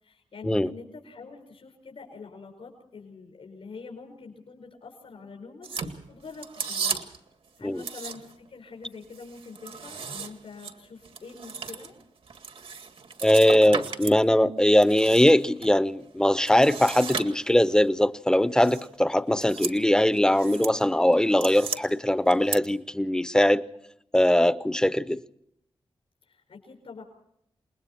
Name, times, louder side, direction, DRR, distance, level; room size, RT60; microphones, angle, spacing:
voice 1, 0.0-7.0 7.6-11.9 26.2-27.0, left 4 dB, 75° left, 5.0 m, -45 dB
sound 1, 5.6-7.3 7.8-8.5 8.8-14.2 14.6-15.7 16.4-17.7 18.6-18.9 19.3-19.8 20.1-20.8 21.1-21.8 22.3-22.6, right 5 dB, 85° right, 2.0 m, -35 dB
voice 2, 13.2-23.6 24.1-25.2, left 1 dB, 5° left, 0.7 m, -21 dB
28.5 x 20.5 x 4.5 m
wide cardioid pair, 105°, 10 cm